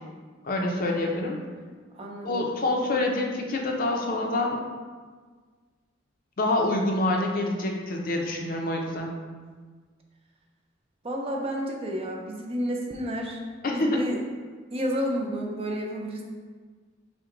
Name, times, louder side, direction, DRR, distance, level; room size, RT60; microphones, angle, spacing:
voice 1, 0.4-1.4 2.2-4.6 6.4-9.1 13.6-14.0, left 2 dB, 50° left, 1 dB, 0.6 m, -26 dB
voice 2, 1.9-2.5 11.0-13.4 13.7-14.2 14.7-16.2, equal, 30° right, 0 dB, 0.5 m, -31 dB
5.8 x 2.2 x 3.8 m, 1.5 s
head